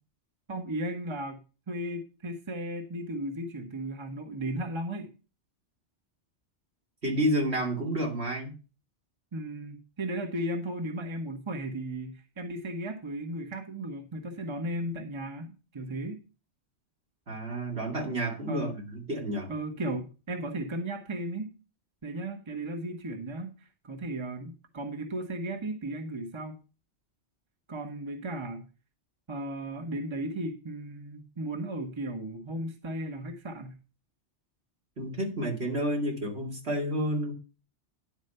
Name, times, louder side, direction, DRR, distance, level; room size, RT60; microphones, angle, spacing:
voice 1, 0.5-1.4 1.7-5.1 9.3-16.2 18.5-18.7 19.5-21.5 22.0-23.5 23.8-26.6 27.7-28.6 29.3-33.8, right 1 dB, 25° right, 6 dB, 1.0 m, -35 dB
voice 2, 7.0-8.5 17.3-19.5 35.0-37.3, right 1 dB, 65° right, -1 dB, 2.9 m, -30 dB
10.5 x 4.4 x 6.6 m, 0.32 s
omnidirectional pair, 1.2 m